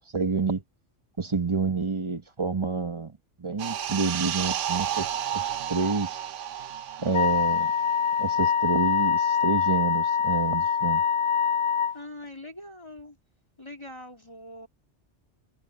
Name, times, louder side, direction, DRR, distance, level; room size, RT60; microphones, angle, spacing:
voice 1, 0.1-0.6 1.2-3.1 3.4-6.2 7.0-7.7 8.2-11.0, right 4 dB, 25° right, 1.2 m, -28 dB
sound 1, 3.6-8.7 8.9-9.1, right 10 dB, 85° right, 1.1 m, -32 dB
Wind instrument woodwind instrument, 7.1-12.0, left 7 dB, 80° left, 1.2 m, -24 dB
voice 2, 11.9-13.1 13.6-14.7, left 1 dB, 25° left, 3.4 m, -43 dB
omnidirectional pair, 1.2 m